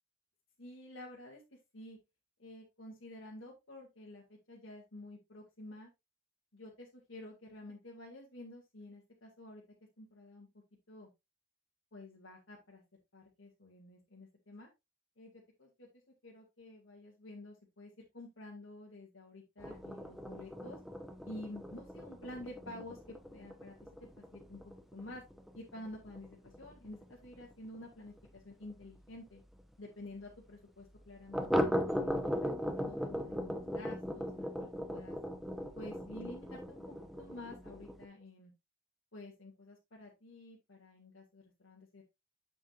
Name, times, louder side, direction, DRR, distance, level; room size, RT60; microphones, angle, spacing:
voice 1, 0.6-1.4 1.7-2.0 2.4-5.9 6.5-9.6 10.0-10.5 10.9-11.1 11.9-12.8 13.1-14.7 15.2-15.9 16.2-20.8 21.3-23.7 24.2-25.2 25.5-29.4 29.8-35.2 35.7-38.5 39.1-42.0, left 1 dB, 75° left, -3 dB, 2.1 m, -50 dB
sound 1, 19.6-28.8 29.1-29.2 29.6-29.7 30.0-30.1 31.3-38.1, equal, ahead, 0.8 m, -38 dB
7.8 x 7.3 x 2.5 m, 0.22 s
head